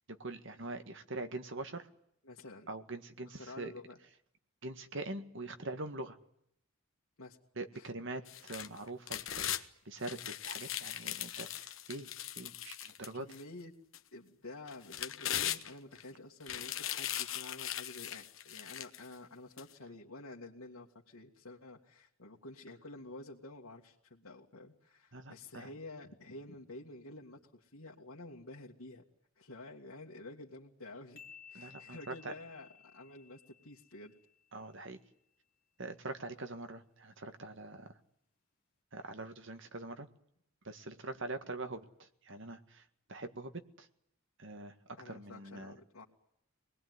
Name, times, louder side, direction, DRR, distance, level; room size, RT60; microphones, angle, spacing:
voice 1, 0.1-1.9 2.7-3.7 4.6-6.2 7.6-9.2 9.5-13.3 25.1-25.7 31.5-32.3 34.5-35.0 35.8-38.0 38.9-40.1 40.6-43.9 44.4-44.7 45.1-45.7, right 2 dB, 60° right, 8 dB, 1.9 m, -43 dB
voice 2, 2.3-2.7 3.4-4.0 7.2-7.4 7.7-7.9 13.1-13.7 14.1-29.0 29.4-31.2 31.5-34.1 45.0-46.0, left 2 dB, 85° left, -2 dB, 2.1 m, -50 dB
sound 1, 8.3-9.6 10.0-13.4 13.9-14.0 14.7-16.0 16.4-19.1 19.6-19.7, left 11 dB, 65° left, 1.2 m, -39 dB
sound 2, 31.2-34.7, left 7 dB, 45° left, 2.8 m, -57 dB
25.0 x 20.0 x 9.6 m, 0.75 s
head